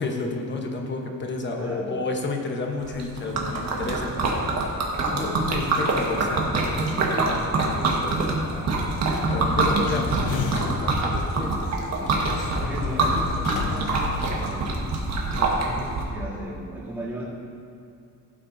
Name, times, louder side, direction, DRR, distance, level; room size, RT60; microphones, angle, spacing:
voice 1, 0.0-8.8 9.3-11.5 11.8-12.1, left 3 dB, 30° left, 2 dB, 1.1 m, -32 dB
voice 2, 1.5-2.0 5.0-6.3 11.3-12.0 12.6-14.8 15.3-17.2, right 1 dB, 5° right, -10 dB, 2.8 m, -37 dB
Liquid, 2.8-16.0, right 3 dB, 50° right, 1.5 m, -25 dB
sound 1, 9.1-10.9 12.1-14.9, left 4 dB, 60° left, 1.0 m, -31 dB
16.0 x 9.0 x 2.7 m, 2.4 s
cardioid pair, 165°, 35 cm